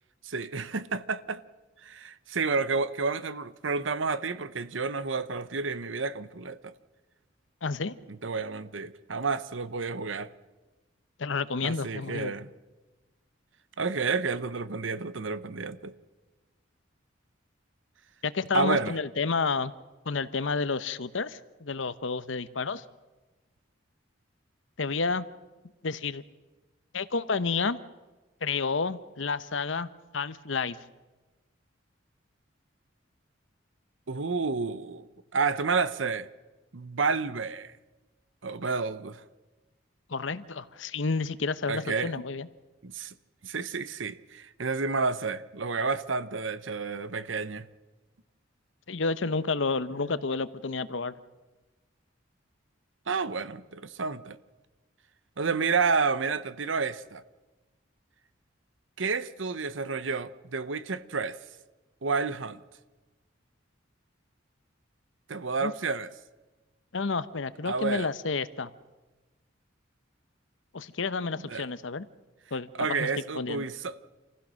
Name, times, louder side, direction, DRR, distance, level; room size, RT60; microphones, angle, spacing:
voice 1, 0.2-1.4 1.8-6.7 8.2-10.3 11.6-12.5 13.8-15.9 18.5-18.9 34.1-35.1 35.3-36.3 36.7-37.7 38.4-39.2 41.7-42.1 42.8-43.1 43.4-47.7 53.1-54.4 55.4-57.2 59.0-61.4 62.0-62.6 65.3-66.1 67.7-68.1 71.5-71.7 72.8-73.9, right 4 dB, 75° right, 0.9 m, -30 dB
voice 2, 7.6-8.0 11.2-12.3 18.2-19.7 20.0-22.8 24.8-25.3 25.8-26.2 26.9-27.8 28.4-30.8 40.1-42.5 48.9-51.1 65.6-65.7 66.9-68.7 70.7-72.1 72.5-73.1 73.3-73.6, left 4 dB, 75° left, 0.9 m, -30 dB
27.5 x 15.5 x 6.4 m
head